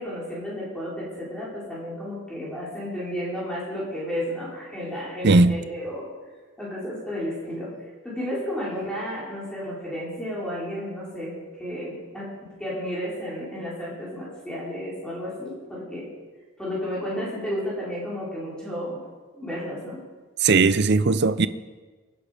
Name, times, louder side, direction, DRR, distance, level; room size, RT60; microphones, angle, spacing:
voice 1, 0.0-6.1 6.6-12.3 12.6-16.1 16.6-19.1 19.3-20.0, equal, 5° left, 4.3 m, -32 dB
voice 2, 5.2-5.6 20.4-21.5, right 3 dB, 50° right, 0.6 m, -18 dB
22.5 x 10.5 x 5.1 m
head